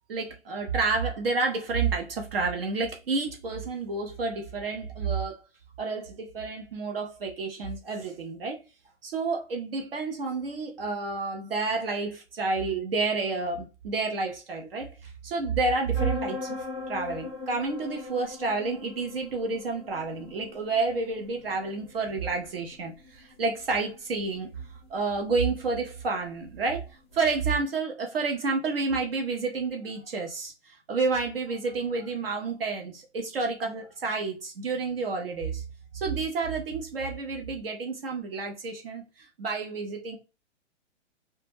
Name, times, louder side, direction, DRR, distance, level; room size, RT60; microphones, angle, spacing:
voice 1, 0.1-5.4 5.8-8.6 9.0-16.6 16.9-24.5 24.9-26.9 27.1-35.6 35.9-40.2, right 4 dB, 50° right, 0.5 m, -30 dB
sound 1, 15.9-27.4, left 3 dB, 25° left, 0.4 m, -41 dB
2.2 x 2.0 x 3.1 m
hypercardioid pair, 170°, 36 cm